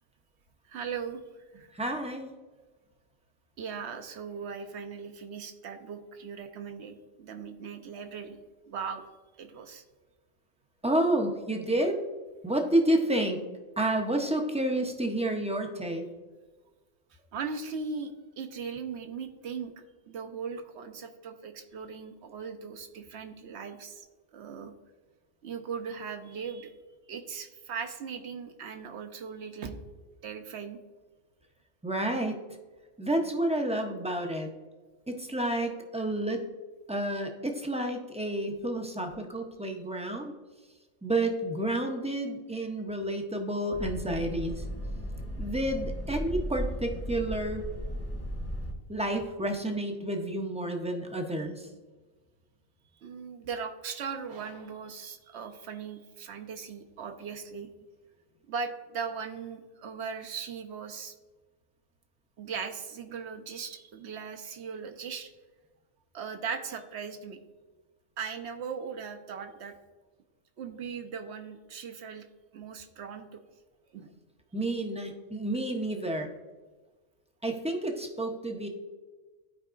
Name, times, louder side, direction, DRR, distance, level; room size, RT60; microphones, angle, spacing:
voice 1, 0.7-1.7 3.6-8.4 8.7-9.0 9.4-9.8 17.3-24.1 24.3-24.7 25.4-26.7 27.1-29.8 30.2-30.8 53.0-57.7 58.5-61.1 62.4-65.3 66.1-67.4 68.2-69.8 70.6-72.2 72.5-73.4 73.9-74.1, right 6 dB, 65° right, 7 dB, 1.0 m, -39 dB
voice 2, 1.7-2.3 10.8-12.0 12.4-13.4 13.8-16.1 31.8-32.4 33.0-34.5 35.1-36.4 36.9-40.3 41.0-44.6 45.4-47.7 48.9-51.6 74.5-76.3 77.4-78.7, right 1 dB, 10° right, 3 dB, 0.4 m, -30 dB
sound 1, 43.7-48.7, equal, 15° left, 0.8 m, -36 dB
12.5 x 4.7 x 2.5 m, 1.3 s
omnidirectional pair, 1.2 m